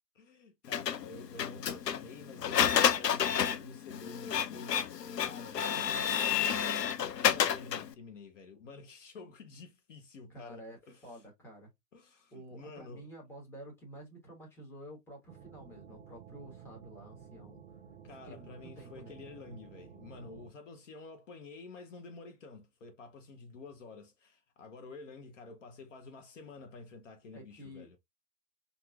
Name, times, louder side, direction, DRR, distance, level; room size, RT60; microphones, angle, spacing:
voice 1, 0.1-5.8 6.1-6.4 7.2-11.2 11.9-13.1 18.0-28.0, left 3 dB, 50° left, 1.0 m, -50 dB
Printer, 0.7-7.9, left 8 dB, 75° left, 0.7 m, -30 dB
voice 2, 5.7-6.5 10.3-11.7 12.3-17.6 18.2-19.2 27.3-28.0, equal, 5° left, 1.2 m, -50 dB
sound 1, 15.3-20.5, right 7 dB, 40° right, 0.9 m, -52 dB
4.4 x 2.7 x 2.4 m
figure-of-eight pair, 115°, 49 cm